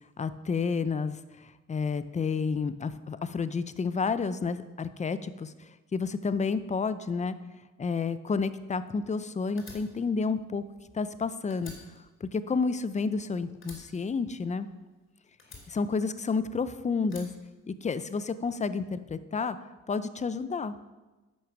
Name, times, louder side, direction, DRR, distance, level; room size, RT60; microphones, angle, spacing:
voice 1, 0.2-1.2 1.4-5.5 5.9-7.4 7.8-10.6 10.9-11.7 12.2-14.7 15.7-17.3 17.7-19.6 19.9-20.8, left 4 dB, 25° left, 13 dB, 0.6 m, -30 dB
Fire, 9.6-11.2 11.5-13.2 13.6-14.9 15.4-16.5 17.0-18.2, left 3 dB, 40° left, 3.3 m, -50 dB
9.9 x 6.3 x 6.1 m, 1.2 s
cardioid pair, 90°, 30 cm